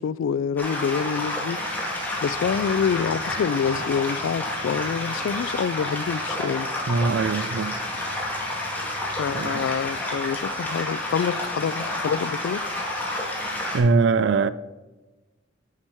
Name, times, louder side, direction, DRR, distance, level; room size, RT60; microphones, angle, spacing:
voice 1, 0.0-1.6 2.2-6.7 9.2-12.6, left 7 dB, 90° left, 0.3 m, -26 dB
sound 1, 0.6-13.8, left 1 dB, 10° left, 2.0 m, -29 dB
voice 2, 6.9-7.8 9.3-9.7 13.7-14.5, right 4 dB, 70° right, 0.4 m, -22 dB
9.8 x 6.1 x 4.5 m
head